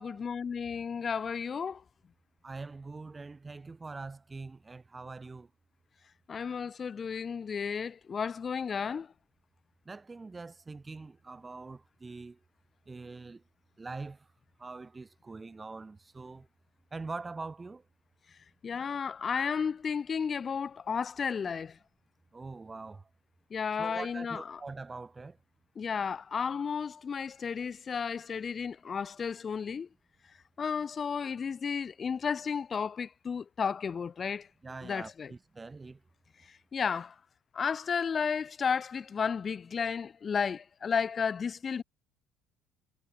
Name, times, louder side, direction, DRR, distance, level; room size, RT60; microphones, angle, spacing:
voice 1, 0.0-1.8 6.3-9.1 18.6-21.8 23.5-24.6 25.8-29.9 30.6-34.5 34.8-35.3 36.7-37.1 37.5-41.8, left 6 dB, 25° left, 0.9 m, -33 dB
voice 2, 2.4-5.5 9.9-12.4 12.9-13.4 13.8-14.3 14.6-16.5 16.9-17.8 22.3-23.1 23.8-25.4 34.6-36.0, right 3 dB, 15° right, 2.3 m, -43 dB
cardioid pair, 150°, 0 cm